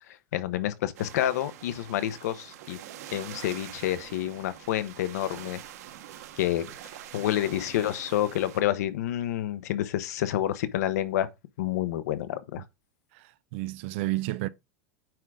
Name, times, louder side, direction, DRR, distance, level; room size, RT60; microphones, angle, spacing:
voice 1, 0.1-2.8 3.1-5.6 6.4-6.7 7.1-11.3 11.6-12.6, left 12 dB, 75° left, 1.1 m, -29 dB
sound 1, 0.9-8.6, right 11 dB, 70° right, 1.4 m, -45 dB
voice 2, 13.1-14.5, right 18 dB, 45° right, 0.6 m, -31 dB
9.2 x 3.9 x 4.9 m
supercardioid pair, 180°, 9 cm